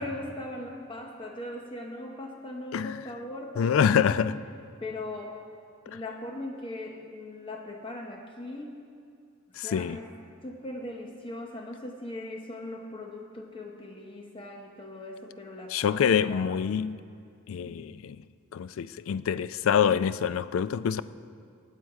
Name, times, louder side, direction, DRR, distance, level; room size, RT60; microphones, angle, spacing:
voice 1, 0.0-4.2 4.8-5.4 5.9-8.7 9.5-10.1 10.4-16.5 17.6-17.8, left 1 dB, 25° left, 2 dB, 0.8 m, -39 dB
voice 2, 3.6-4.3 9.6-10.0 15.7-17.0 17.5-18.2 18.5-21.0, left 7 dB, 70° left, 16 dB, 0.3 m, -26 dB
18.5 x 7.6 x 4.7 m, 2.4 s
head